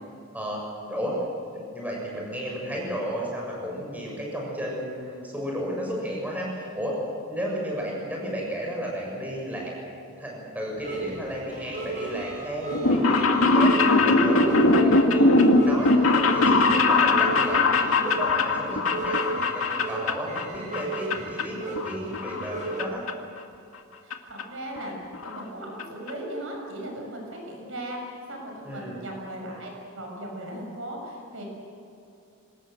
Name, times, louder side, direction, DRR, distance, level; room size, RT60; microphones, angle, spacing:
voice 1, 0.3-1.2 1.5-7.0 7.3-9.7 10.2-13.7 14.0-19.2 19.5-23.0 28.6-29.0, equal, 5° right, -3 dB, 7.0 m, -33 dB
sound 1, 10.8-22.8, right 3 dB, 35° right, 5.9 m, -35 dB
sound 2, 12.7-20.5 20.7-21.4 21.8-22.8 23.1-23.2 24.1-24.2 24.4-24.5 24.8-24.9 25.1-25.4 25.8-25.9 26.1-26.2, left 2 dB, 75° left, 2.2 m, -21 dB
voice 2, 24.0-31.4, right 1 dB, 65° right, 1 dB, 6.5 m, -37 dB
25.0 x 20.0 x 8.0 m, 2.6 s
head